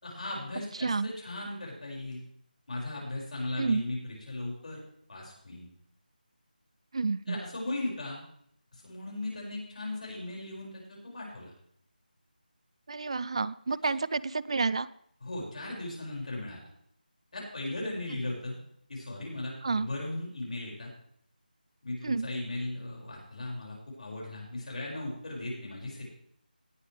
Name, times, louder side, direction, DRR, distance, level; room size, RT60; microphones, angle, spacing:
voice 1, 0.0-2.2 2.7-4.8 5.1-5.7 7.3-8.2 8.7-11.5 15.2-16.6 17.3-18.6 18.9-20.9 21.8-26.1, left 2 dB, 50° left, -3 dB, 5.6 m, -37 dB
voice 2, 6.9-7.4 12.9-14.9 19.6-19.9 22.0-22.3, right 4 dB, 40° right, 19 dB, 0.4 m, -29 dB
18.5 x 8.7 x 3.3 m, 0.67 s
figure-of-eight pair, 170°, 5 cm